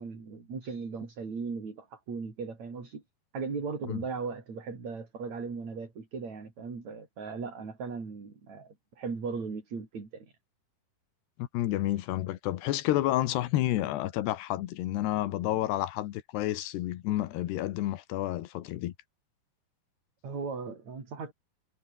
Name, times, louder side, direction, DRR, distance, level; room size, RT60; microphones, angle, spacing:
voice 1, 0.0-3.0 3.3-10.3 20.2-21.3, right 5 dB, 45° right, 6.0 m, -38 dB
voice 2, 11.4-18.9, left 14 dB, 90° left, 3.4 m, -30 dB
omnidirectional pair, 4.7 m